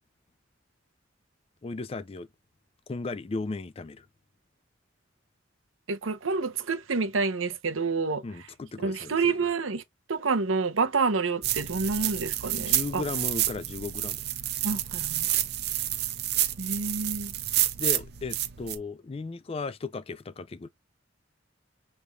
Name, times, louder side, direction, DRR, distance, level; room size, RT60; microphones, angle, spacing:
voice 1, 1.6-2.3 2.9-4.1 8.2-9.3 12.6-14.2 17.8-20.7, left 3 dB, 30° left, 0.3 m, -35 dB
voice 2, 5.9-8.2 8.8-9.8 10.1-13.0 14.6-15.3 16.6-17.3, right 4 dB, 90° right, 0.8 m, -28 dB
sound 1, 11.4-18.8, right 13 dB, 55° right, 0.7 m, -29 dB
6.8 x 3.3 x 2.4 m
head